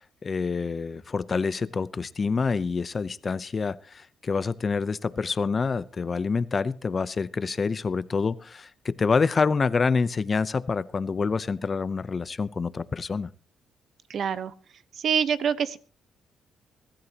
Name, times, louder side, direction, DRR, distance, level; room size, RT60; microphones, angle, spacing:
voice 1, 0.0-13.3, left 4 dB, 35° left, 16 dB, 0.7 m, -27 dB
voice 2, 14.1-14.5 14.9-15.8, right 7 dB, 60° right, 14 dB, 1.1 m, -25 dB
23.5 x 13.0 x 2.9 m, 0.37 s
cardioid pair, 90°, 0 cm